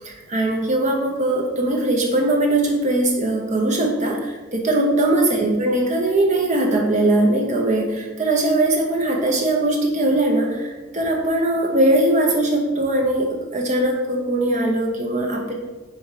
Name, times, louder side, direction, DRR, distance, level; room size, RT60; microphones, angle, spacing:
voice 1, 0.0-15.5, right 1 dB, 35° right, 0 dB, 0.9 m, -20 dB
4.8 x 4.4 x 4.7 m, 1.2 s
head